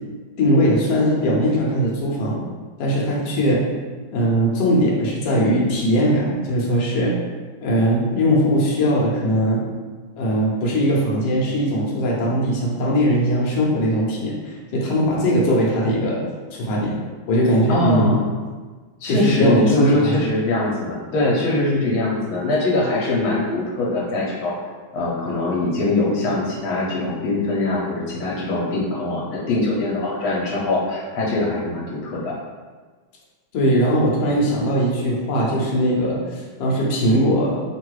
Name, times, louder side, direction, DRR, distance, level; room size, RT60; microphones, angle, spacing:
voice 1, 0.4-2.4 2.8-3.6 4.1-7.1 7.6-9.6 10.2-16.2 16.5-17.0 17.3-18.2 19.1-20.2 33.5-37.5, equal, 70° left, -4 dB, 1.5 m, -20 dB
voice 2, 17.7-18.2 19.0-24.6 24.9-32.3, left 2 dB, 85° left, -5 dB, 1.7 m, -22 dB
3.7 x 2.5 x 4.6 m, 1.4 s
omnidirectional pair, 2.2 m